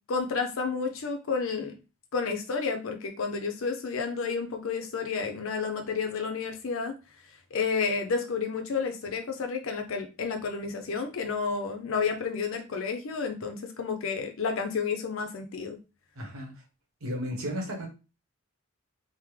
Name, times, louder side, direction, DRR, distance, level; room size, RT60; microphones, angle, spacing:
voice 1, 0.1-1.8 2.1-6.9 7.5-15.8, left 5 dB, 70° left, 0.5 m, -31 dB
voice 2, 16.1-16.6 17.0-17.9, equal, 85° right, 1.1 m, -34 dB
3.4 x 2.0 x 3.1 m
head